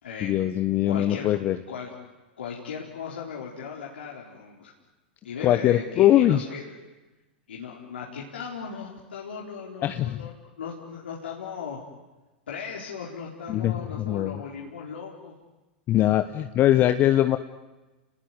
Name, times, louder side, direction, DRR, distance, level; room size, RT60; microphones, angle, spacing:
voice 1, 0.2-1.6 5.4-6.4 9.8-10.2 13.5-14.4 15.9-17.4, left 13 dB, 35° left, 10 dB, 1.1 m, -22 dB
voice 2, 0.9-1.3 1.7-1.9 2.4-4.7 5.2-6.7 7.5-11.8 12.5-15.4, left 6 dB, 80° left, -3 dB, 4.2 m, -37 dB
30.0 x 20.0 x 9.7 m, 1.1 s
hypercardioid pair, 105°, 6 cm